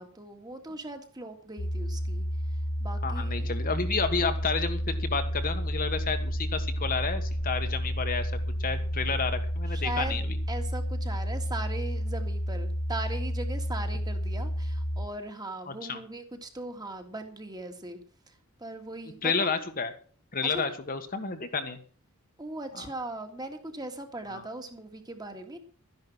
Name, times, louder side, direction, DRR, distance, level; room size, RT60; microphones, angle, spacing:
voice 1, 0.0-2.2 2.8-3.4 9.7-18.0 18.6-19.5 20.5-20.6 22.4-25.6, right 2 dB, 20° right, 5 dB, 2.1 m, -39 dB
sound 1, 1.6-15.1, equal, 80° left, 1.3 m, -31 dB
voice 2, 3.0-8.3 8.6-10.4 15.7-16.0 19.2-19.9 20.3-21.8 22.7-22.9 24.3-24.5, left 4 dB, 40° left, 7 dB, 1.5 m, -31 dB
sound 2, 3.2-11.4, equal, 75° right, 2.5 m, -44 dB
13.0 x 11.0 x 6.1 m, 0.43 s
head